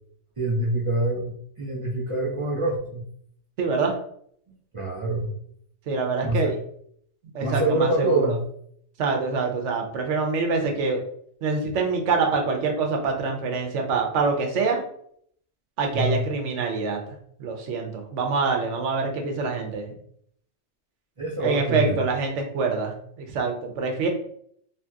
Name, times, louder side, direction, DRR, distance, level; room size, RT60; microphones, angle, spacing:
voice 1, 0.4-3.0 4.7-5.3 6.2-6.5 7.4-8.4 15.9-16.2 21.2-22.0, right 2 dB, 40° right, -3 dB, 0.5 m, -25 dB
voice 2, 3.6-4.0 5.9-6.5 7.3-8.4 9.0-11.0 11.4-14.8 15.8-17.0 17.4-19.9 21.4-24.1, right 4 dB, 75° right, 3 dB, 1.0 m, -25 dB
2.8 x 2.7 x 2.3 m, 0.65 s
omnidirectional pair, 1.3 m